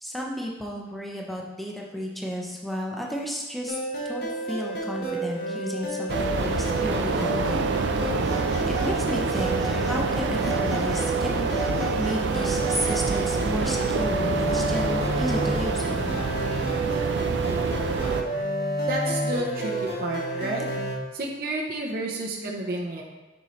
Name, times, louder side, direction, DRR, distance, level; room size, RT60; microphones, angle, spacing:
voice 1, 0.0-3.8 4.0-7.7 8.7-11.5 11.9-16.2 22.4-22.6, equal, ahead, -2 dB, 0.7 m, -33 dB
sound 1, 3.7-21.0, right 1 dB, 60° left, 1.5 m, -30 dB
sound 2, 6.1-18.2, right 4 dB, 85° right, 0.4 m, -27 dB
Telephone, 8.2-8.9 9.3-10.0 10.4-11.1 11.5-13.5, right 4 dB, 20° right, 1.1 m, -37 dB
voice 2, 18.9-20.6 21.1-23.0, right 2 dB, 55° right, -2 dB, 0.7 m, -30 dB
6.7 x 5.7 x 3.1 m, 1.2 s
head